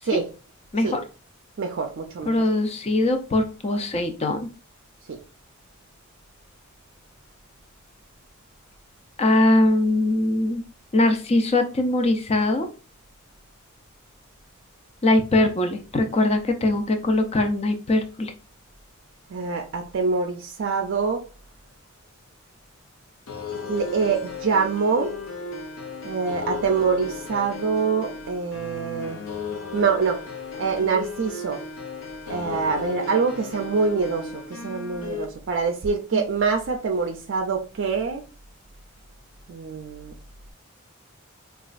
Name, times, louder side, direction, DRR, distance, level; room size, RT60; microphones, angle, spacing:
voice 1, 1.6-2.3 5.1-5.2 19.3-21.2 23.7-25.1 26.0-29.2 29.7-30.2 30.6-31.6 32.3-38.2 39.5-40.1, right 5 dB, 60° right, 0.4 m, -25 dB
voice 2, 2.3-4.5 9.2-10.6 10.9-12.7 15.0-18.3 36.1-36.2, left 2 dB, 30° left, 0.5 m, -21 dB
sound 1, 23.3-35.2, left 4 dB, 85° left, 0.7 m, -35 dB
4.0 x 2.3 x 2.3 m
head